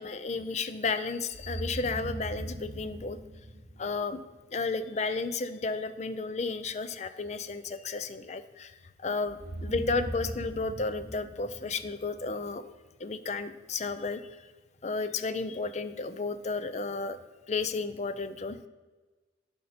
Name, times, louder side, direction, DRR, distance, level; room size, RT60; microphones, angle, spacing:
voice 1, 0.0-3.2 3.8-4.2 4.5-12.6 13.0-14.5 14.8-17.2 17.5-18.6, left 4 dB, 40° left, 12 dB, 0.5 m, -33 dB
sound 1, 1.3-4.3 9.3-12.5, right 1 dB, 70° right, 0.9 m, -40 dB
10.5 x 5.4 x 4.2 m, 1.3 s
head